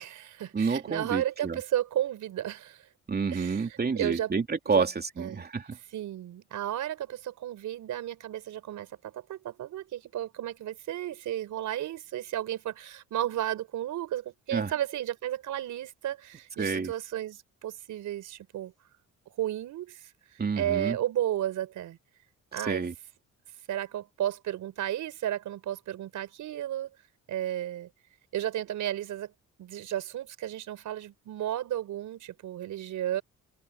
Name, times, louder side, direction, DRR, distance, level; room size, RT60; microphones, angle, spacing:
voice 1, 0.0-2.9 3.3-4.3 4.7-4.8 5.2-5.4 5.9-18.7 19.4-22.0 22.5-22.9 23.7-26.9 27.3-27.9 28.3-29.3 29.6-33.2, right 12 dB, 75° right, 4.8 m, -33 dB
voice 2, 0.5-1.6 3.1-5.8 14.5-14.7 16.6-16.9 20.4-21.0 22.6-22.9, right 5 dB, 30° right, 3.0 m, -29 dB
cardioid pair, 90°, 30 cm